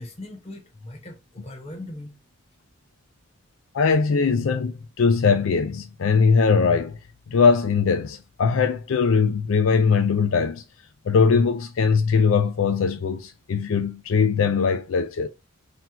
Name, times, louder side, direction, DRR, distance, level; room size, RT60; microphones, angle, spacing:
voice 1, 0.0-2.2, left 1 dB, 30° left, 0.9 m, -39 dB
voice 2, 3.7-7.0 7.3-10.6 11.1-15.3, left 5 dB, 70° left, 0.4 m, -21 dB
4.0 x 2.8 x 2.8 m
head